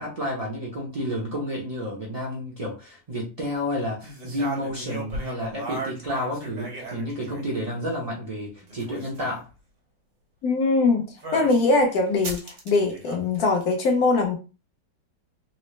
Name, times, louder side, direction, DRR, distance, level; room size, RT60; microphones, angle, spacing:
voice 1, 0.0-9.5, equal, 35° right, 0.6 m, -30 dB
sound 1, 4.0-7.6 8.6-9.4 11.2-11.7 12.2-13.7, right 2 dB, 75° right, 1.9 m, -36 dB
voice 2, 10.4-11.0 11.3-12.4 12.7-14.4, left 3 dB, 60° left, 1.3 m, -21 dB
4.1 x 2.1 x 3.1 m
omnidirectional pair, 2.0 m